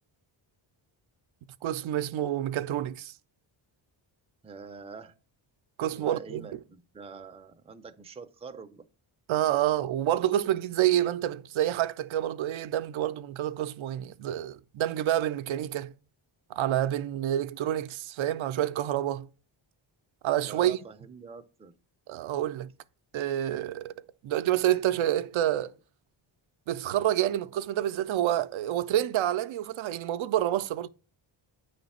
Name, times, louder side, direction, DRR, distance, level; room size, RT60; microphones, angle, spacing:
voice 1, 1.6-3.1 5.8-6.6 9.3-15.9 16.5-19.3 20.2-20.8 22.1-22.7 23.1-25.7 26.7-30.9, right 12 dB, 75° right, 0.5 m, -28 dB
voice 2, 4.4-5.2 5.9-8.8 20.4-21.8, right 5 dB, 15° right, 0.4 m, -45 dB
8.7 x 3.3 x 4.2 m
wide cardioid pair, 130°, 48 cm